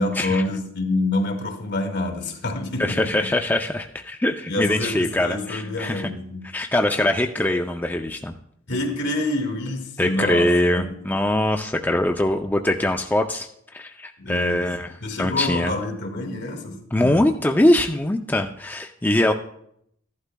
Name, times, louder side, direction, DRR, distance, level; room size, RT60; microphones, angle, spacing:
voice 1, 0.0-3.3 4.5-6.5 8.7-11.1 14.2-17.3, left 2 dB, 60° left, 1.8 m, -27 dB
voice 2, 2.8-6.1 6.5-8.3 10.0-14.9 15.2-15.7 16.9-19.3, left 1 dB, 10° left, 0.5 m, -22 dB
14.5 x 11.5 x 2.3 m
head